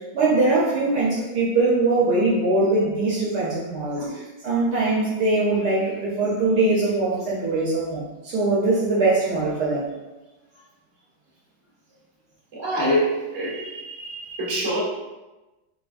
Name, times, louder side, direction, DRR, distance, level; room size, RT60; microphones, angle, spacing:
voice 1, 0.1-4.0 4.4-9.8, right 2 dB, 75° right, -7 dB, 1.5 m, -22 dB
voice 2, 12.5-14.8, equal, 50° right, -7 dB, 1.9 m, -26 dB
6.7 x 2.3 x 2.5 m, 1.1 s
omnidirectional pair, 1.8 m